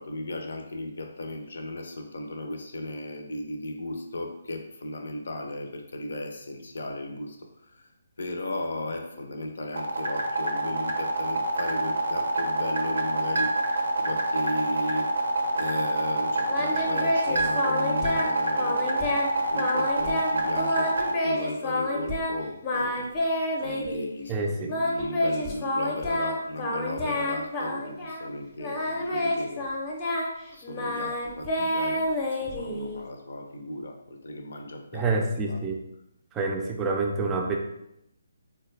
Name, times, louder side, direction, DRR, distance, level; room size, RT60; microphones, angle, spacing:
voice 1, 0.0-7.9 8.2-15.1 15.5-23.1 23.6-29.7 30.5-35.6, left 1 dB, 70° left, 4 dB, 0.6 m, -36 dB
sound 1, 9.8-21.1, right 2 dB, 80° right, 0.6 m, -27 dB
Singing, 16.5-18.3 18.6-19.3 19.6-20.3 20.6-22.3 22.6-24.1 24.7-28.3 28.6-33.0, left 1 dB, 25° left, 0.7 m, -29 dB
voice 2, 24.3-24.7 34.9-35.8 36.3-37.6, right 3 dB, 15° right, 1 dB, 0.4 m, -27 dB
3.9 x 2.2 x 3.2 m, 0.81 s
hypercardioid pair, 150°, 0 cm